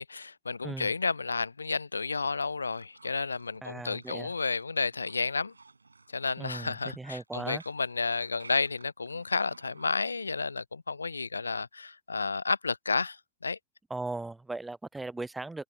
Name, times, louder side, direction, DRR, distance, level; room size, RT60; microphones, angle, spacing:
voice 1, 0.0-5.5 6.1-13.6, left 4 dB, 75° left, 0.3 m, -31 dB
sound 1, 2.5-10.3, right 3 dB, 80° right, 7.3 m, -55 dB
voice 2, 3.6-4.3 6.4-7.6 13.9-15.6, right 2 dB, 10° right, 0.5 m, -38 dB
figure-of-eight pair, 90°, 0 cm